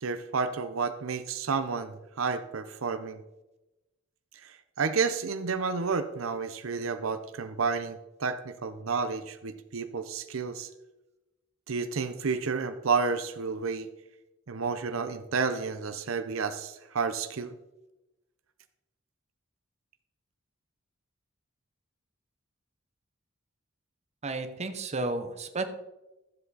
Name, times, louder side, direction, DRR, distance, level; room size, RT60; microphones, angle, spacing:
voice 1, 0.0-3.2 4.4-10.7 11.7-13.9 14.5-17.6, right 5 dB, 75° right, 10 dB, 0.7 m, -31 dB
voice 2, 24.2-25.6, right 2 dB, 35° right, 8 dB, 0.9 m, -32 dB
12.5 x 7.7 x 4.0 m, 0.98 s
head